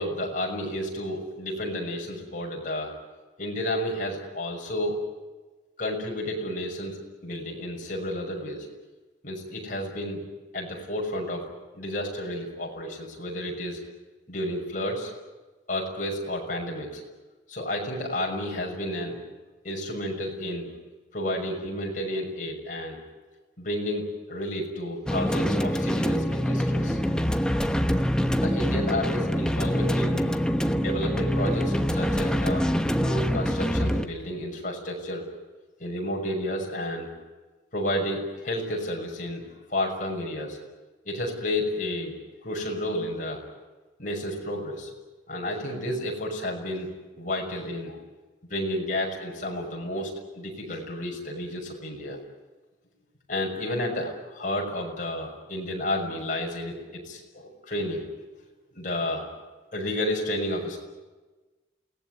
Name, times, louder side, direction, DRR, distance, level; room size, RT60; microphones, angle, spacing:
voice 1, 0.0-2.9 3.4-5.0 5.8-8.7 9.2-10.2 10.5-11.5 11.7-13.8 14.3-15.1 15.7-17.0 17.5-19.2 19.6-20.7 21.1-23.0 23.6-27.2 28.4-30.3 30.7-32.7 33.0-35.2 35.8-37.1 37.7-40.6 41.0-42.2 42.4-43.4 44.0-44.9 45.3-46.9 47.2-48.0 48.5-52.2 53.3-58.1 58.7-59.3 59.7-60.8, left 1 dB, 45° left, -1 dB, 6.4 m, -31 dB
sound 1, 25.0-34.0, equal, 5° left, 1.0 m, -25 dB
29.0 x 18.0 x 9.5 m, 1.2 s
head